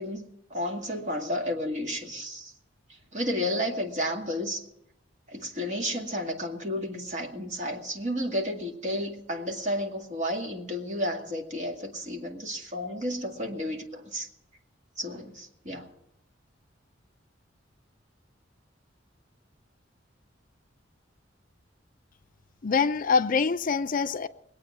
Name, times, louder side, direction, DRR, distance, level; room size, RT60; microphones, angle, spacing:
voice 1, 0.0-2.5 3.1-4.6 5.3-14.3 15.0-15.9, equal, 40° right, 2.2 m, -32 dB
voice 2, 22.6-24.3, left 5 dB, 45° left, 0.5 m, -24 dB
21.5 x 8.6 x 7.4 m
head